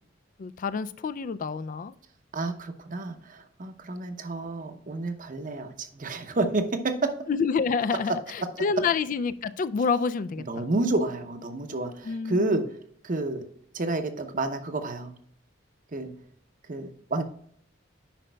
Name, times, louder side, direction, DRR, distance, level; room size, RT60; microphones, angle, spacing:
voice 1, 0.4-1.9 7.3-10.7 12.0-12.6, left 5 dB, 45° left, 15 dB, 0.3 m, -28 dB
voice 2, 2.3-7.2 10.5-12.7 13.0-13.5 13.7-15.1 15.9-16.1 16.7-17.2, right 2 dB, 45° right, 8 dB, 0.7 m, -29 dB
10.0 x 5.2 x 2.2 m, 0.64 s
head